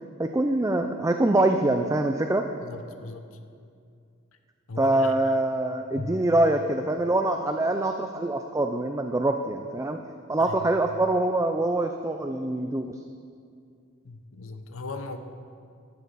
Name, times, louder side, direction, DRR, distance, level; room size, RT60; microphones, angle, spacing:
voice 1, 0.2-2.5 4.8-10.0 10.3-13.0, right 2 dB, 15° right, 5 dB, 0.4 m, -24 dB
voice 2, 2.6-3.4 4.7-5.4 5.9-6.2 10.5-10.7 14.0-15.2, left 2 dB, 75° left, 8 dB, 0.9 m, -38 dB
15.0 x 12.0 x 4.1 m, 2.4 s
head